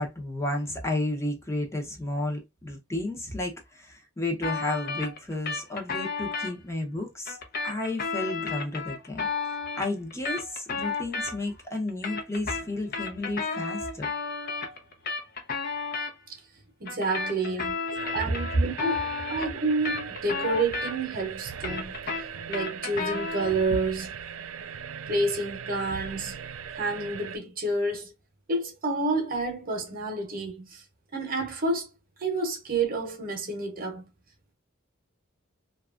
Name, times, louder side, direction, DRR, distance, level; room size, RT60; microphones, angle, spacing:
voice 1, 0.0-7.4 7.6-14.1 18.0-18.1, left 2 dB, 15° left, 0.7 m, -32 dB
sound 1, 4.4-6.5 7.3-11.6 11.9-16.1 16.9-21.2 21.5-23.6, left 4 dB, 50° left, 0.6 m, -32 dB
voice 2, 16.8-17.8 18.1-21.9 22.5-24.1 25.1-26.4 26.7-28.1 28.5-30.8 31.1-31.9 32.2-34.1, right 2 dB, 45° right, 0.9 m, -29 dB
sound 2, 17.9-27.4, right 7 dB, 90° right, 0.4 m, -39 dB
2.9 x 2.3 x 2.4 m
head